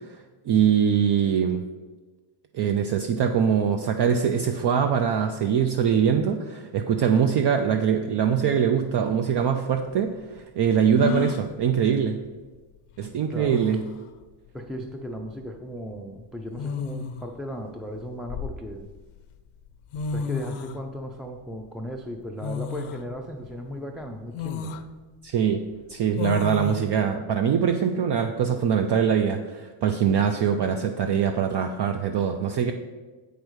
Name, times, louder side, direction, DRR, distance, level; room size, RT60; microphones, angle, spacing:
voice 1, 0.5-1.6 2.5-12.2 13.0-13.8 25.2-25.6 25.9-32.7, right 7 dB, 55° right, 6 dB, 0.6 m, -23 dB
sound 1, 9.4-9.5 11.0-11.5 13.0-13.1 13.4-13.9 15.2-15.5 16.5-17.3 18.0-19.0 19.7-19.8 19.9-20.8 22.4-23.0 23.5-23.6 24.3-24.8 26.2-26.8, left 5 dB, 80° left, 0.7 m, -31 dB
voice 2, 13.3-13.6 14.5-18.9 20.1-24.7, equal, ahead, 2 dB, 0.4 m, -36 dB
8.0 x 5.1 x 6.2 m, 1.3 s
cardioid pair, 150°, 50 cm